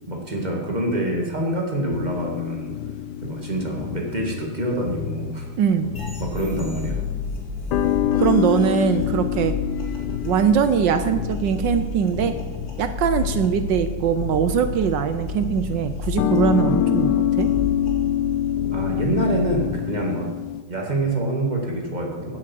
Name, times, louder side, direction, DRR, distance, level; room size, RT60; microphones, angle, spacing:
voice 1, 0.1-2.7 3.2-5.5 6.2-7.1 18.7-20.3 20.7-22.4, right 1 dB, 20° right, 0 dB, 1.8 m, -26 dB
sound 1, 1.9-20.6, left 12 dB, 75° left, 1.0 m, -27 dB
voice 2, 5.6-5.9 8.2-9.5 10.2-12.3 12.8-17.5, right 7 dB, 70° right, 10 dB, 1.2 m, -21 dB
sound 2, 6.0-19.5, left 4 dB, 35° left, 2.6 m, -31 dB
10.0 x 8.0 x 7.6 m, 1.3 s
omnidirectional pair, 2.4 m